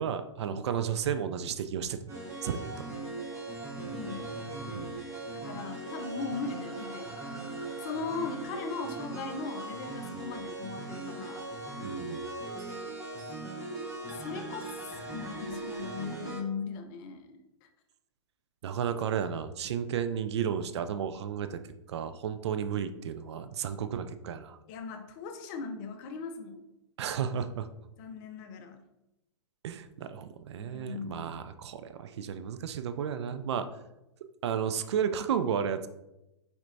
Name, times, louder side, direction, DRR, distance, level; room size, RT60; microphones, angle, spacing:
voice 1, 0.0-2.1 2.4-2.9 4.7-4.9 11.8-12.2 18.6-21.6 21.9-24.6 27.0-27.7 29.6-33.7 34.4-35.9, right 8 dB, 65° right, 10 dB, 0.4 m, -33 dB
sound 1, 2.1-16.4, right 2 dB, 20° right, 1.0 m, -39 dB
voice 2, 3.9-4.3 5.3-7.2 7.8-11.5 14.1-14.8 15.1-17.7 24.7-26.7 28.0-28.8 30.6-31.4, left 4 dB, 40° left, 6 dB, 0.7 m, -39 dB
4.5 x 4.3 x 2.6 m, 0.92 s
hypercardioid pair, 120°, 15 cm